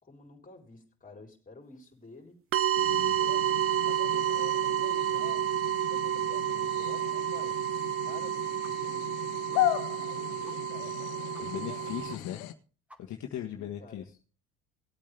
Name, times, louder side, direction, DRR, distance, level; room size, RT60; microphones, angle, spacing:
voice 1, 0.0-2.4 2.7-5.5 5.9-7.6 8.0-10.9 13.5-14.1, left 3 dB, 25° left, 2 dB, 4.0 m, -51 dB
sound 1, 2.5-12.1, right 10 dB, 40° right, 0.7 m, -30 dB
sound 2, 2.8-12.5, left 13 dB, 75° left, 1.3 m, -37 dB
sound 3, 8.6-8.7 9.0-9.1 9.5-9.7 10.0-10.1 10.4-10.6 10.9-11.0 11.3-11.4 11.7-11.8 12.1-12.2 12.5-12.6 12.9-13.3, equal, 5° right, 2.1 m, -54 dB
voice 2, 11.4-12.4 13.0-14.1, left 10 dB, 55° left, 3 dB, 1.5 m, -38 dB
18.5 x 8.5 x 3.4 m, 0.38 s
supercardioid pair, 80°, 35 cm